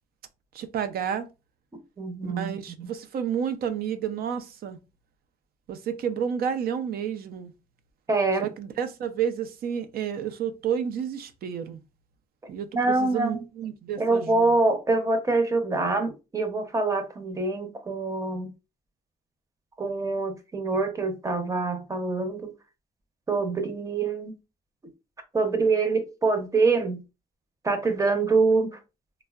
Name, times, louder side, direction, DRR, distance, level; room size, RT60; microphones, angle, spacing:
voice 1, 0.5-1.3 2.2-4.8 5.7-7.5 8.4-11.8 12.5-14.5, right 8 dB, 85° right, 0.4 m, -30 dB
voice 2, 2.0-2.5 2.8-2.9 8.1-8.5 12.7-13.4 14.0-18.5 19.8-22.5 23.3-24.3 25.3-27.0 27.6-28.8, right 3 dB, 20° right, 0.5 m, -25 dB
3.4 x 2.0 x 2.3 m
wide cardioid pair, 140°, 15 cm